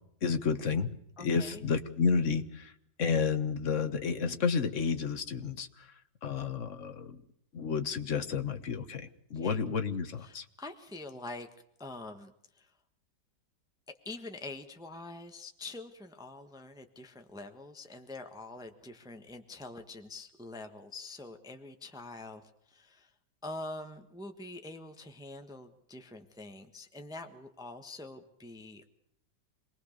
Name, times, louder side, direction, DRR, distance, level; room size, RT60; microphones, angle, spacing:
voice 1, 0.2-0.9 1.2-2.7 3.0-5.7 6.2-7.1 7.5-10.4, left 5 dB, 45° left, 8 dB, 1.6 m, -31 dB
voice 2, 1.2-1.6 9.3-9.6 10.2-11.5 11.8-12.7 14.0-23.1 23.4-28.9, left 2 dB, ahead, 5 dB, 1.3 m, -45 dB
27.0 x 19.5 x 6.7 m, 0.73 s
omnidirectional pair, 1.9 m